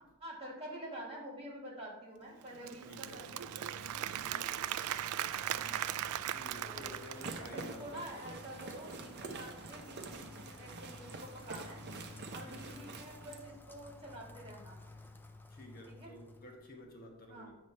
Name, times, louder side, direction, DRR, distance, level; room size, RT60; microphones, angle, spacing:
voice 1, 0.2-3.5 5.5-6.0 6.6-7.0 7.4-11.8 12.3-14.8 15.9-16.1 17.3-17.5, right 1 dB, 30° right, -3 dB, 2.1 m, -48 dB
Applause / Crowd, 2.4-7.8, right 12 dB, 85° right, 0.3 m, -38 dB
voice 2, 2.9-3.2 4.2-4.7 6.3-8.0 12.5-12.8 15.5-17.6, left 1 dB, 45° left, 0 dB, 1.2 m, -52 dB
Rain, 2.9-16.7, left 2 dB, 10° left, 0.4 m, -54 dB
sound 1, 7.0-13.4, right 3 dB, 50° right, 0.7 m, -47 dB
8.8 x 3.2 x 5.4 m, 1.0 s
head